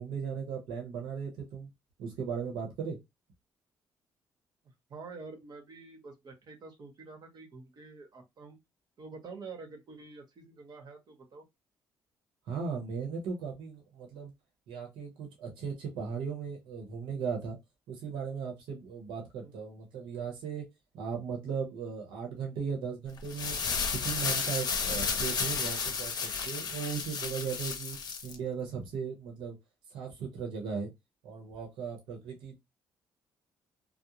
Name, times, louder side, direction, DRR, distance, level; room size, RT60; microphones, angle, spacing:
voice 1, 0.0-1.7 2.0-3.0 12.5-14.3 14.7-17.6 17.9-20.6 20.9-28.0 28.2-29.6 29.9-30.9 31.2-32.6, right 6 dB, 85° right, 0.9 m, -37 dB
voice 2, 4.9-8.6 9.0-11.5 19.4-19.5, right 4 dB, 55° right, 1.0 m, -47 dB
sound 1, 23.2-28.3, left 5 dB, 55° left, 0.7 m, -32 dB
2.4 x 2.0 x 2.9 m
supercardioid pair, 60°, 8 cm